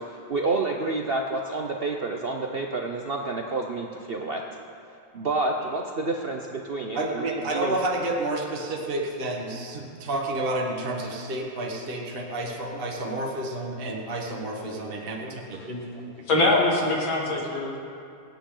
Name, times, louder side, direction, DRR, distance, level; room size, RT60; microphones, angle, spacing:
voice 1, 0.0-4.4 5.1-7.7, right 3 dB, 80° right, 1 dB, 0.5 m, -29 dB
voice 2, 6.9-16.0, right 2 dB, 30° right, -1 dB, 1.4 m, -30 dB
voice 3, 16.3-17.8, left 2 dB, 90° left, -3 dB, 3.2 m, -23 dB
24.0 x 9.3 x 3.9 m, 2.6 s
omnidirectional pair, 2.1 m